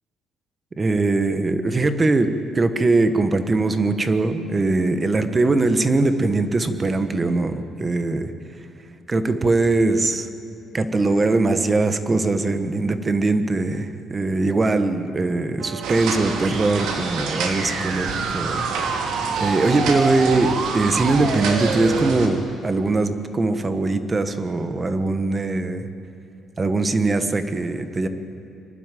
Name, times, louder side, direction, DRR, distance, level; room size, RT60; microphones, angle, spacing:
voice 1, 0.8-8.3 9.1-10.3 10.7-18.7 19.4-25.8 26.6-28.1, right 3 dB, 20° right, 9 dB, 1.2 m, -21 dB
sound 1, 15.6-22.1, right 5 dB, 55° right, 1.4 m, -29 dB
sound 2, 15.8-22.3, right 4 dB, 85° right, 2.7 m, -29 dB
25.5 x 11.5 x 9.2 m, 2.9 s
cardioid pair, 140°, 0 cm